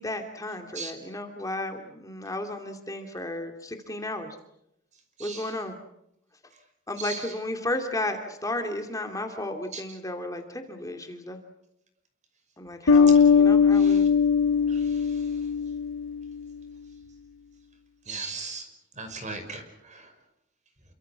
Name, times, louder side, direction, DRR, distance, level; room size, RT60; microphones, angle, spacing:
voice 1, 0.0-4.4 5.2-5.8 6.9-11.4 12.6-14.1, left 1 dB, 20° left, 4 dB, 2.7 m, -33 dB
voice 2, 5.2-5.5 7.0-7.3 9.7-9.8 13.1-13.2 13.8-14.0 14.7-15.2 18.1-18.7 19.0-20.1, right 4 dB, 40° right, 7 dB, 5.8 m, -38 dB
Bass guitar, 12.9-16.4, left 6 dB, 85° left, 0.9 m, -20 dB
28.5 x 24.5 x 6.2 m, 0.79 s
head